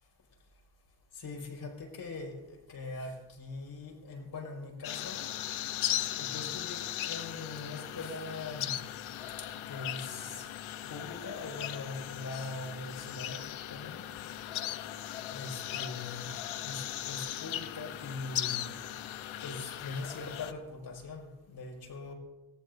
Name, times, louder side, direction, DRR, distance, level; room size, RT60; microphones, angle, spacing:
voice 1, 1.1-5.6 6.2-9.0 9.4-10.5 10.9-14.1 15.3-16.3 16.6-18.7 19.4-22.1, left 3 dB, 50° left, 0 dB, 5.4 m, -42 dB
sound 1, 4.8-20.5, left 12 dB, 80° left, 1.0 m, -38 dB
26.5 x 17.5 x 2.7 m, 1.1 s
cardioid pair, 100°, 47 cm